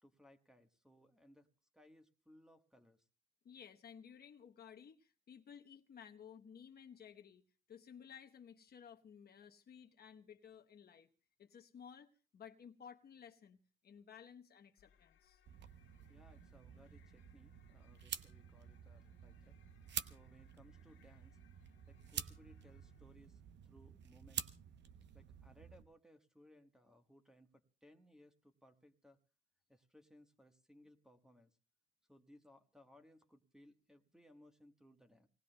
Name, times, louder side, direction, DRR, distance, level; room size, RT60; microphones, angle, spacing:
voice 1, 0.0-1.5 1.7-3.1 16.1-19.6 20.0-21.4 21.9-24.5 25.1-29.2 29.7-31.6 32.1-35.3, left 1 dB, 5° right, 1.3 m, -65 dB
voice 2, 3.4-11.1 11.4-15.4, left 7 dB, 50° left, 1.0 m, -56 dB
sound 1, 14.8-23.3, left 8 dB, 75° left, 1.8 m, -72 dB
sound 2, 15.5-25.8, right 9 dB, 65° right, 0.8 m, -49 dB
26.5 x 19.0 x 2.2 m
cardioid pair, 90°, 20 cm